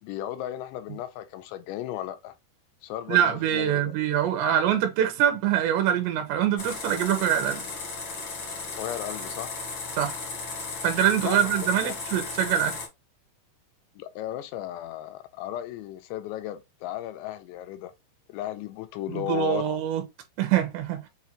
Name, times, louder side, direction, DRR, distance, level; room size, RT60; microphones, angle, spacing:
voice 1, 0.0-2.3 2.8-3.9 8.8-9.5 11.2-12.0 14.0-17.9 18.3-19.7, left 12 dB, 85° left, 2.9 m, -35 dB
voice 2, 3.1-7.7 10.0-10.2 10.8-12.8 19.1-20.0 20.4-21.1, right 10 dB, 85° right, 2.8 m, -24 dB
sound 1, 6.6-12.9, left 4 dB, 65° left, 1.3 m, -35 dB
6.9 x 2.5 x 2.9 m
omnidirectional pair, 5.1 m